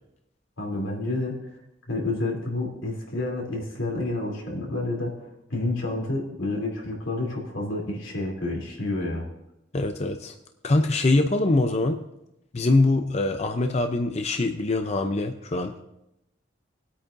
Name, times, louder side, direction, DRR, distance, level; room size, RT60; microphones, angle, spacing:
voice 1, 0.6-1.5 1.9-5.1 5.5-9.3, left 2 dB, 90° left, -2 dB, 3.2 m, -29 dB
voice 2, 9.7-10.3 10.6-12.0 12.5-15.7, left 2 dB, 35° left, 6 dB, 0.5 m, -23 dB
20.0 x 8.5 x 2.6 m, 0.85 s
head